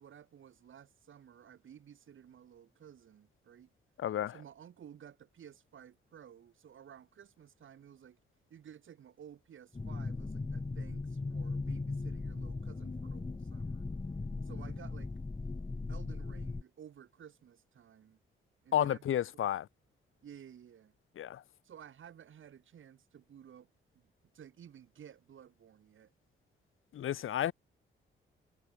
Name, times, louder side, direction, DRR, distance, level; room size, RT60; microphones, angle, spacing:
voice 1, 0.0-3.7 4.3-8.2 8.5-13.9 14.4-15.1 15.9-18.2 18.6-19.0 19.3-19.5 20.2-20.9 21.6-23.7 24.0-26.1 27.1-27.2, right 9 dB, 70° right, 4.5 m, -54 dB
voice 2, 4.0-4.4 18.7-19.7 21.2-21.4 26.9-27.5, left 11 dB, 75° left, 1.9 m, -31 dB
sound 1, 9.7-16.6, left 3 dB, 25° left, 3.0 m, -38 dB
cardioid pair, 70°, 21 cm